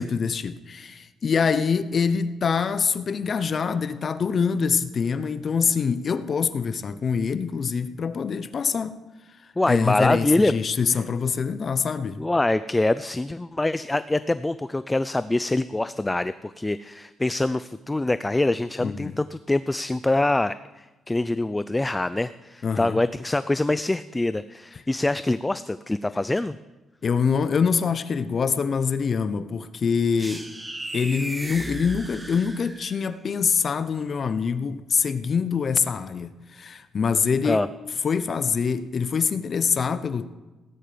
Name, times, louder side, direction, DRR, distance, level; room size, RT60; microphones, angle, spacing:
voice 1, 0.0-9.0 9.7-12.2 18.8-19.2 22.6-23.0 27.0-30.4 30.9-37.6 38.0-40.3, left 6 dB, 45° left, 0.7 m, -25 dB
voice 2, 9.6-10.5 12.2-26.6 37.4-37.7, left 2 dB, 15° left, 0.4 m, -24 dB
sound 1, 30.2-33.1, right 1 dB, 15° right, 1.5 m, -36 dB
18.0 x 9.4 x 5.1 m
cardioid pair, 90°, 0 cm